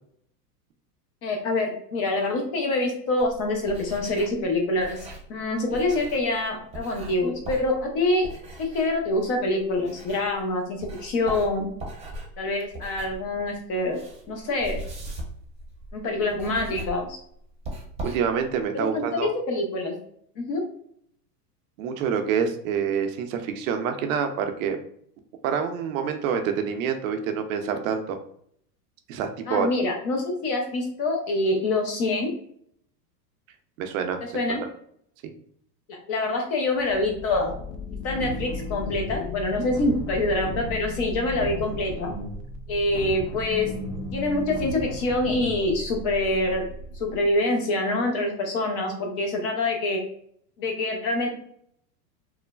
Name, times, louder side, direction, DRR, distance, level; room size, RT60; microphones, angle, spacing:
voice 1, 1.2-8.3 8.6-11.7 12.4-14.0 14.3-14.8 15.9-17.2 18.7-20.0 20.4-20.6 29.5-32.3 34.3-34.6 35.9-37.5 38.0-42.1 42.7-43.7 44.1-46.6 47.0-50.0 50.6-51.3, left 2 dB, 30° left, 2 dB, 0.4 m, -26 dB
sound 1, 3.2-10.5 10.8-18.6, right 1 dB, 15° right, 0.7 m, -39 dB
voice 2, 18.0-19.3 21.8-24.8 25.4-28.2 29.1-29.7 33.8-34.2 34.5-34.7 35.2-35.3, right 7 dB, 55° right, 6 dB, 0.5 m, -27 dB
sound 2, 36.8-47.4, left 3 dB, 85° left, 0.6 m, -37 dB
sound 3, 38.0-39.3 39.6-40.9 41.2-42.5 42.8-45.6, right 2 dB, 55° left, 1.2 m, -37 dB
3.0 x 2.1 x 2.2 m, 0.67 s
hypercardioid pair, 120°, 48 cm